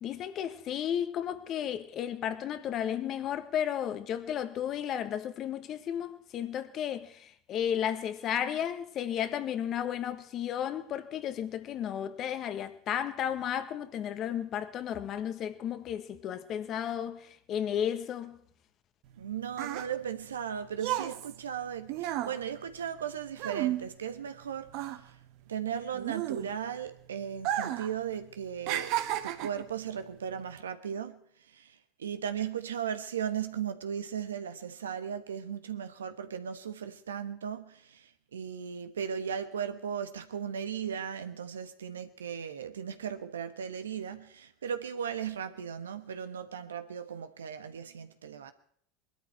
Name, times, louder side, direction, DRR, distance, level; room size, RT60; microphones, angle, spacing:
voice 1, 0.0-18.4, left 9 dB, 45° left, 1.4 m, -33 dB
sound 1, 19.1-24.4 24.7-26.8 27.4-27.9 28.2-29.7 30.4-30.6, right 13 dB, 60° right, 1.2 m, -33 dB
voice 2, 19.2-25.2 25.5-28.9 29.2-31.2 31.5-48.5, right 8 dB, 85° right, 1.2 m, -37 dB
20.5 x 12.5 x 4.4 m
hypercardioid pair, 80°, 0 cm